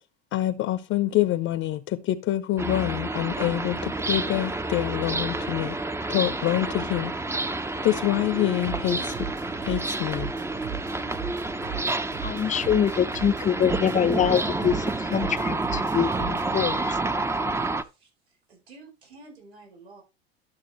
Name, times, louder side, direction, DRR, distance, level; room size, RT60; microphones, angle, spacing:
voice 1, 0.3-5.8 6.1-7.1 7.8-9.1 9.6-10.3, left 14 dB, 45° left, 0.9 m, -26 dB
sound 1, 2.6-17.8, right 2 dB, 10° right, 0.8 m, -29 dB
sound 2, 8.6-16.6, right 8 dB, 55° right, 6.4 m, -38 dB
voice 2, 12.2-14.8 15.1-16.8, left 9 dB, 25° left, 0.6 m, -24 dB
voice 3, 17.8-20.0, right 3 dB, 85° right, 5.2 m, -50 dB
11.5 x 7.1 x 3.2 m
hypercardioid pair, 85°, 31 cm